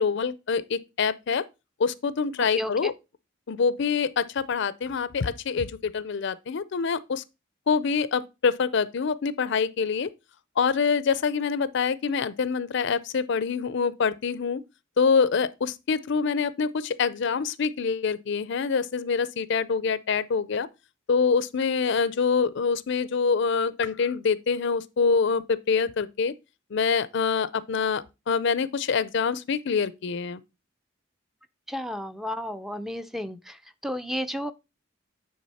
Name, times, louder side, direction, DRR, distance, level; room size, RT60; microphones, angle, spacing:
voice 1, 0.0-1.5 1.8-2.9 3.5-7.2 7.7-10.1 10.6-14.6 15.0-20.7 21.1-26.3 26.7-30.4, left 5 dB, 65° left, 0.5 m, -25 dB
voice 2, 2.5-2.9 31.7-34.5, equal, ahead, 0.4 m, -32 dB
9.5 x 3.6 x 4.1 m
head